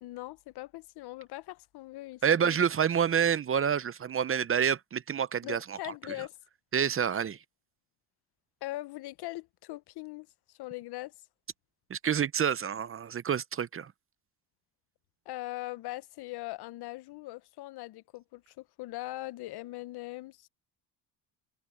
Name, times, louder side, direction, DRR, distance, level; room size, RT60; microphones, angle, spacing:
voice 1, 0.0-2.6 5.4-6.4 8.6-11.1 15.2-20.5, left 18 dB, 70° left, 1.0 m, -41 dB
voice 2, 2.2-5.9 6.7-7.4 11.9-13.9, right 8 dB, 30° right, 0.7 m, -28 dB
supercardioid pair, 80°, 41 cm